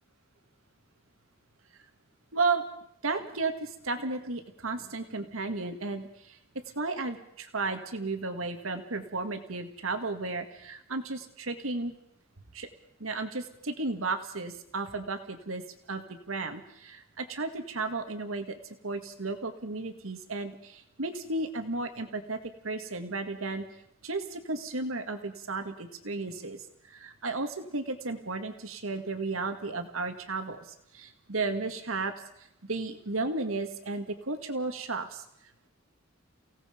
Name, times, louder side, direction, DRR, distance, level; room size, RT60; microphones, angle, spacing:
voice 1, 2.3-2.6 3.0-6.4 6.8-11.9 12.5-12.7 13.0-15.6 15.9-22.4 22.6-23.7 24.0-26.6 26.8-30.7 30.9-32.1 32.4-35.2, right 3 dB, 90° right, 7 dB, 2.0 m, -34 dB
29.5 x 17.5 x 5.2 m, 0.75 s
head